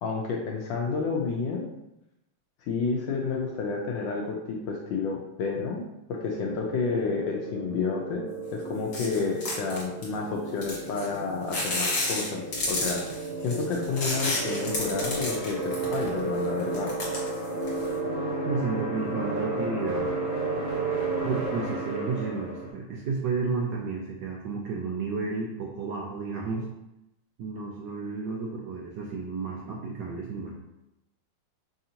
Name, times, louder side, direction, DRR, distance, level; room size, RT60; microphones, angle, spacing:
voice 1, 0.0-1.7 2.7-8.2 8.5-16.9, left 4 dB, 75° left, -1 dB, 1.1 m, -30 dB
sound 1, 6.2-22.7, right 2 dB, 25° right, 1.1 m, -33 dB
sound 2, 8.9-10.1 10.6-11.2 11.5-16.2 16.6-17.9, left 2 dB, 55° left, 1.8 m, -31 dB
voice 2, 18.5-20.1 21.2-26.7 27.4-30.6, right 4 dB, 75° right, -2 dB, 1.0 m, -32 dB
5.5 x 2.6 x 2.8 m, 0.88 s
omnidirectional pair, 2.4 m